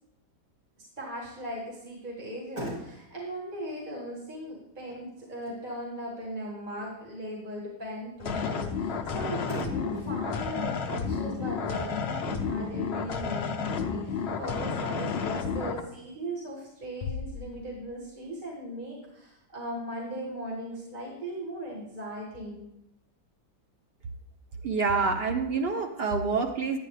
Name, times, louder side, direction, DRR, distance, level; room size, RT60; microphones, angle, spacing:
voice 1, 1.0-22.6, equal, 25° right, -5 dB, 2.0 m, -38 dB
Motor vehicle (road), 2.2-15.1, equal, 55° right, 3.2 m, -46 dB
sound 1, 8.2-15.8, left 5 dB, 55° left, 0.7 m, -31 dB
Bass drum, 17.0-18.4, left 5 dB, 75° left, 1.1 m, -39 dB
voice 2, 24.6-26.8, right 4 dB, 85° right, 4 dB, 0.5 m, -27 dB
10.5 x 9.4 x 3.3 m, 0.83 s
omnidirectional pair, 1.9 m